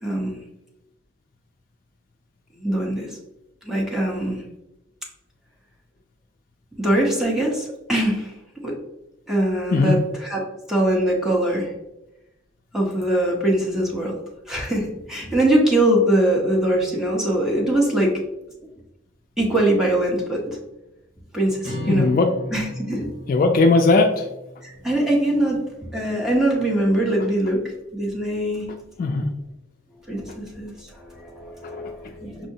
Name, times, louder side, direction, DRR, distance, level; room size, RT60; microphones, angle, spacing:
voice 1, 0.0-0.4 2.6-3.2 3.6-4.4 6.8-8.3 8.6-8.8 9.3-10.4 10.7-11.7 12.7-14.1 14.5-18.2 19.4-20.6 21.3-22.1 22.5-23.1 24.6-27.6 27.9-28.7 30.1-32.5, right 1 dB, ahead, -2 dB, 0.8 m, -22 dB
voice 2, 9.7-10.0 21.9-22.3 23.3-24.3 29.0-29.3, left 3 dB, 50° left, 4 dB, 0.3 m, -18 dB
sound 1, 21.6-26.0, equal, 75° right, 1.3 m, -36 dB
5.5 x 2.1 x 2.7 m, 0.92 s
head